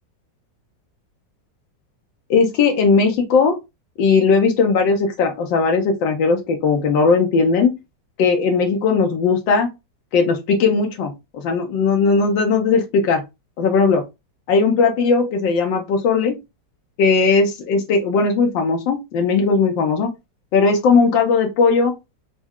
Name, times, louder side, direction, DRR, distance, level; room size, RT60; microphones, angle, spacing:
voice 1, 2.3-3.5 4.0-7.7 8.2-9.7 10.1-13.2 13.6-14.0 14.5-16.4 17.0-20.1 20.5-21.9, left 4 dB, 90° left, 1.5 m, -18 dB
5.9 x 2.1 x 3.6 m
omnidirectional pair, 1.9 m